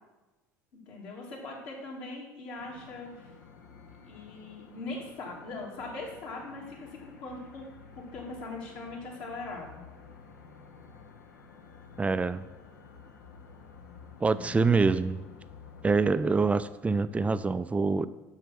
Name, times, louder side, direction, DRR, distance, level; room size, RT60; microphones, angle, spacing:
voice 1, 0.7-3.3 4.1-7.7 8.0-9.8 14.2-14.6 16.0-16.4, left 2 dB, 55° left, -3 dB, 2.7 m, -41 dB
sound 1, 2.6-16.6, left 5 dB, 75° left, 1.0 m, -52 dB
voice 2, 12.0-12.4 14.2-15.3 15.8-18.1, right 4 dB, 15° right, 14 dB, 0.4 m, -25 dB
7.7 x 6.4 x 6.0 m, 1.1 s
figure-of-eight pair, 65°, 10 cm